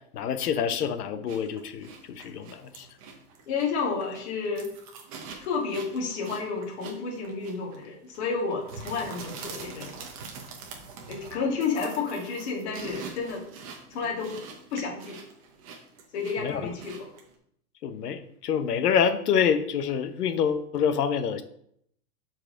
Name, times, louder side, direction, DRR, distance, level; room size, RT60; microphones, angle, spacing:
voice 1, 0.1-2.9 16.4-16.7 17.8-21.4, left 7 dB, 85° left, 10 dB, 1.1 m, -27 dB
sound 1, 1.3-17.3, right 5 dB, 25° right, 0.8 m, -44 dB
voice 2, 3.5-4.7 5.4-10.1 11.1-13.5 13.9-14.4 14.7-15.2 16.1-17.0, left 5 dB, 45° left, -1 dB, 2.0 m, -31 dB
12.0 x 4.8 x 3.8 m, 0.70 s
supercardioid pair, 180°, 45 cm